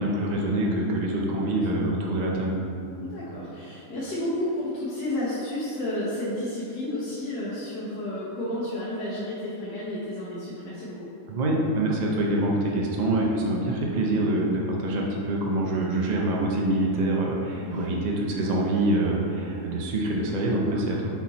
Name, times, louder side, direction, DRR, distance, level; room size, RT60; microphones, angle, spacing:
voice 1, 0.0-2.6 11.3-21.1, right 1 dB, 70° right, -2 dB, 0.4 m, -25 dB
voice 2, 3.0-11.1 17.7-17.8, left 1 dB, 85° left, -11 dB, 1.8 m, -31 dB
6.0 x 4.2 x 4.1 m, 2.8 s
omnidirectional pair, 1.7 m